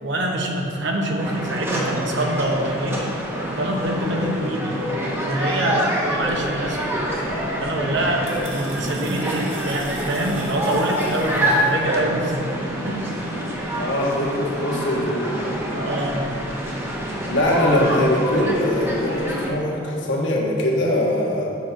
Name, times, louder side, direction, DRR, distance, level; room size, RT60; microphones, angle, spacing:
voice 1, 0.0-3.0 3.6-4.8 5.2-7.0 7.6-12.4 12.8-13.2 15.7-16.3, right 1 dB, 60° right, 0 dB, 1.0 m, -25 dB
sound 1, 1.2-19.5, equal, 10° right, 1.0 m, -26 dB
sound 2, 7.1-11.7, right 3 dB, 80° right, 1.7 m, -40 dB
voice 2, 13.8-15.3 17.3-21.5, left 1 dB, 65° left, -3 dB, 1.5 m, -22 dB
7.4 x 6.1 x 5.9 m, 2.8 s
head